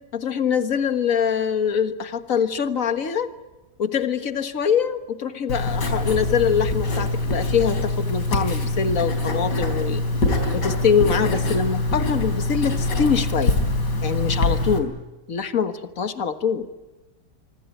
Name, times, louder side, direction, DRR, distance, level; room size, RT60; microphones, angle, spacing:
voice 1, 0.1-3.3 3.8-10.0 10.5-13.6 14.0-14.9 15.3-16.7, left 7 dB, 50° left, 9 dB, 1.9 m, -23 dB
Writing, 5.5-14.8, left 2 dB, 75° left, 4.6 m, -24 dB
24.5 x 24.5 x 9.4 m, 1.1 s
omnidirectional pair, 1.9 m